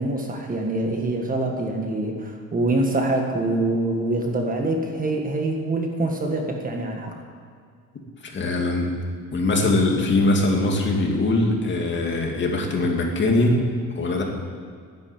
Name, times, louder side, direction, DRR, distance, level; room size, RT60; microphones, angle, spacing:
voice 1, 0.0-7.2, right 2 dB, 30° right, 2 dB, 1.6 m, -25 dB
voice 2, 8.2-8.9 9.3-13.6 13.9-14.2, left 2 dB, 40° left, 0 dB, 2.4 m, -21 dB
11.0 x 10.5 x 8.7 m, 2.1 s
cardioid pair, 145°, 30 cm